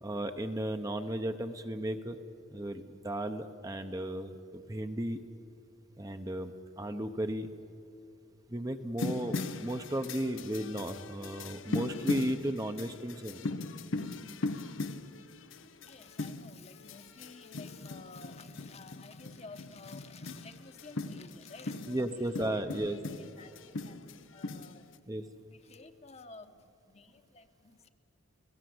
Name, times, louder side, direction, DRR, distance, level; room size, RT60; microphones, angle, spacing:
voice 1, 0.0-2.2 2.5-5.2 6.0-7.5 8.5-13.5 21.9-23.0 25.1-25.2, right 1 dB, 20° right, 0.8 m, -35 dB
sound 1, 9.0-25.0, left 3 dB, 85° left, 0.9 m, -39 dB
voice 2, 15.8-22.7 23.2-24.0 24.3-25.1 25.5-27.9, left 4 dB, 35° left, 1.1 m, -52 dB
29.5 x 16.5 x 7.9 m
head